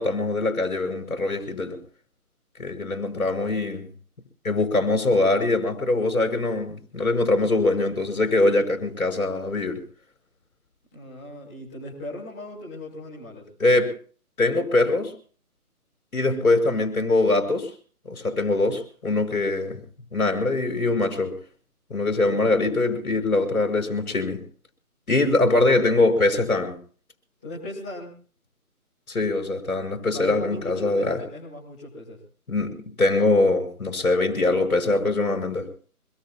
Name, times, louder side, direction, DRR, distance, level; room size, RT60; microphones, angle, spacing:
voice 1, 0.0-1.8 2.6-3.8 4.4-9.8 13.6-13.9 14.4-15.1 16.1-17.7 18.1-19.8 20.1-21.4 21.9-24.4 25.1-26.8 29.1-31.2 32.5-35.7, left 2 dB, 65° left, 5.6 m, -23 dB
voice 2, 10.9-13.5 27.4-28.1 30.1-32.2, left 1 dB, 5° left, 1.0 m, -38 dB
26.0 x 22.0 x 2.2 m
figure-of-eight pair, 165°, 46 cm